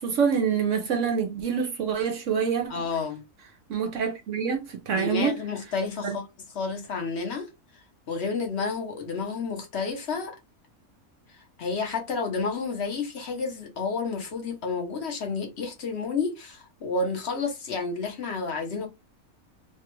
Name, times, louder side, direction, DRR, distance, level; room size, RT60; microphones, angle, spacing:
voice 1, 0.0-2.7 3.7-5.3 6.0-6.2, right 6 dB, 65° right, 0.9 m, -26 dB
voice 2, 2.7-3.2 4.9-6.2 6.5-7.5 8.1-10.4 11.3-18.9, left 4 dB, 50° left, 1.0 m, -30 dB
3.3 x 2.3 x 3.0 m
omnidirectional pair, 1.6 m